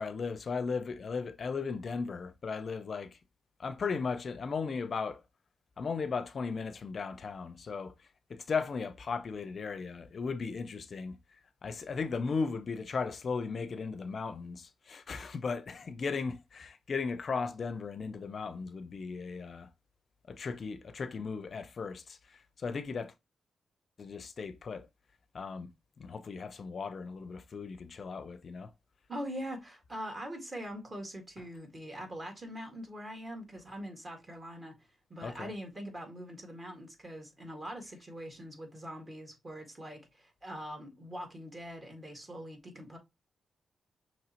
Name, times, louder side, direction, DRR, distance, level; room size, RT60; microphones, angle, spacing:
voice 1, 0.0-3.2 3.6-5.2 5.8-7.9 8.3-11.2 11.6-19.7 20.3-23.1 24.0-24.9 25.3-25.7 26.0-28.7 35.2-35.5, left 5 dB, 55° left, 0.4 m, -36 dB
voice 2, 29.1-34.7 35.1-43.0, equal, 30° right, 1.7 m, -43 dB
6.0 x 3.1 x 2.8 m
cardioid pair, 85°, 0 cm